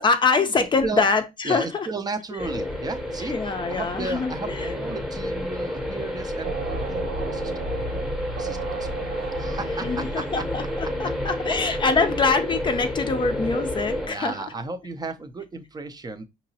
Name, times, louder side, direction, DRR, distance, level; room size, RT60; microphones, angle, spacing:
voice 1, 0.0-1.9 3.3-4.7 9.8-14.4, left 4 dB, 30° left, 0.6 m, -24 dB
voice 2, 1.4-6.5 6.9-7.0 7.3-7.5 7.9-8.0 8.3-10.4 12.0-12.3 14.0-16.2, right 3 dB, 25° right, 0.6 m, -34 dB
sound 1, 2.4-14.1, left 1 dB, ahead, 0.9 m, -30 dB
sound 2, 6.4-11.1, right 4 dB, 75° right, 0.8 m, -35 dB
5.1 x 2.9 x 2.7 m
cardioid pair, 110°, 17 cm